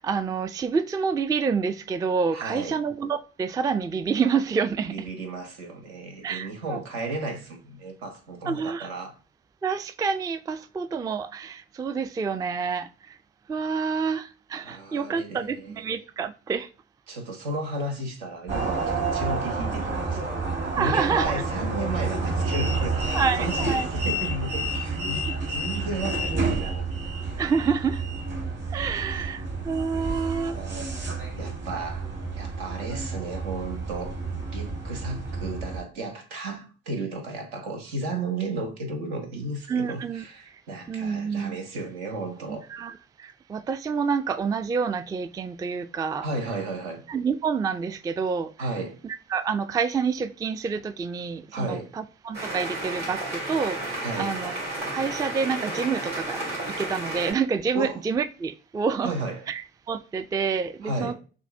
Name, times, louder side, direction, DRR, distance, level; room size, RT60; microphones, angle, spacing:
voice 1, 0.0-5.1 6.2-6.8 8.5-8.9 9.6-13.2 13.5-16.7 20.8-21.4 23.1-23.9 27.4-28.0 28.7-30.6 39.7-40.2 40.5-40.6 40.9-41.6 42.5-46.3 47.1-48.5 49.0-54.5 54.9-59.1 59.5-61.1, right 5 dB, 10° right, 0.3 m, -28 dB
voice 2, 2.3-2.8 4.9-9.1 14.6-15.8 17.1-20.4 20.7-26.9 29.0-29.3 30.1-30.9 31.4-32.1 32.4-34.2 34.5-42.6 46.2-47.0 48.6-49.0 51.5-51.9 54.0-54.4 54.9-55.0 57.7-58.0 59.0-59.4 60.8-61.1, right 2 dB, 75° right, 1.0 m, -34 dB
sound 1, 18.5-35.8, right 3 dB, 35° right, 1.5 m, -29 dB
sound 2, 52.3-57.3, right 1 dB, 60° right, 2.4 m, -32 dB
6.3 x 2.5 x 2.6 m
figure-of-eight pair, 40°, 31 cm